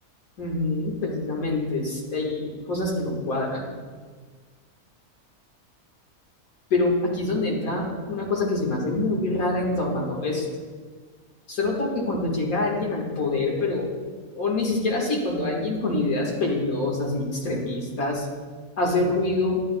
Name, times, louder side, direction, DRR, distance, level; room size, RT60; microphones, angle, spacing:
voice 1, 0.4-3.7 6.7-10.5 11.5-13.9 14.3-18.3 18.8-19.6, left 2 dB, 70° left, -1 dB, 2.1 m, -25 dB
11.0 x 10.5 x 2.2 m, 1.5 s
omnidirectional pair, 1.6 m